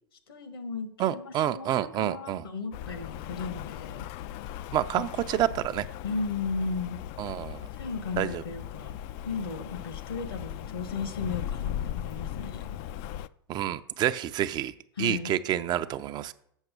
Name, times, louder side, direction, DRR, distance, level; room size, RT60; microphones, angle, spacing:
voice 1, 0.3-4.1 4.9-5.1 6.0-7.0 7.7-9.0 9.2-12.8 15.0-15.3, left 4 dB, 80° left, 10 dB, 1.3 m, -35 dB
voice 2, 1.0-2.4 4.7-5.9 7.2-7.7 8.2-8.4 13.5-16.3, right 12 dB, 35° right, 13 dB, 0.5 m, -28 dB
Rain, 2.7-13.3, left 11 dB, 50° left, 0.3 m, -38 dB
7.2 x 5.9 x 6.7 m, 0.72 s
hypercardioid pair, 95°, 12 cm